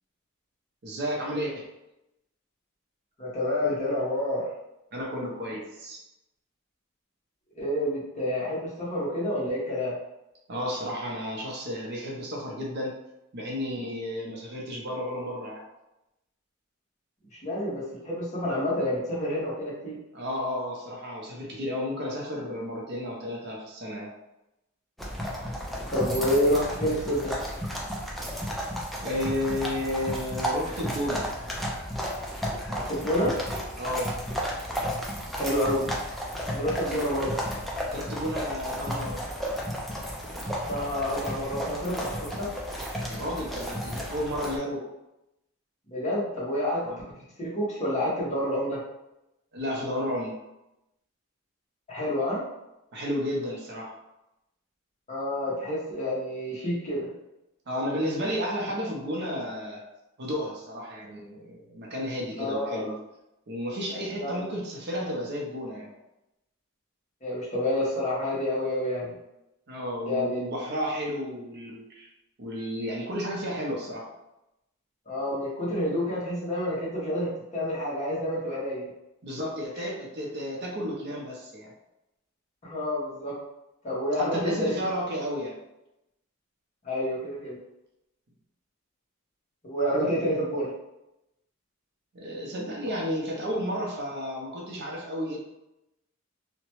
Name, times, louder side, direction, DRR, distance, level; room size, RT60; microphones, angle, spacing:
voice 1, 0.8-1.7 4.9-6.0 10.5-12.9 13.3-15.6 20.1-24.1 29.0-31.2 33.8-34.1 36.9-37.0 37.9-39.2 43.1-44.9 46.8-47.0 49.5-50.4 52.9-53.9 57.7-59.8 60.2-63.0 63.5-65.9 69.7-72.1 72.4-74.1 79.2-81.7 84.2-85.5 92.1-95.4, equal, 55° right, -2 dB, 0.6 m, -32 dB
voice 2, 3.2-4.5 7.5-9.9 17.4-20.0 25.9-27.4 32.7-33.3 35.3-35.9 36.5-37.4 40.4-42.5 45.9-46.9 47.4-48.8 51.9-52.4 55.1-57.1 62.4-62.9 64.2-64.5 67.2-69.1 70.0-70.4 75.1-78.8 79.8-79.9 82.6-83.3 83.8-84.7 86.8-87.6 89.6-90.7, left 1 dB, 35° left, -7 dB, 1.1 m, -28 dB
sound 1, 25.0-44.6, equal, ahead, 0.4 m, -33 dB
2.9 x 2.2 x 3.0 m, 0.91 s
head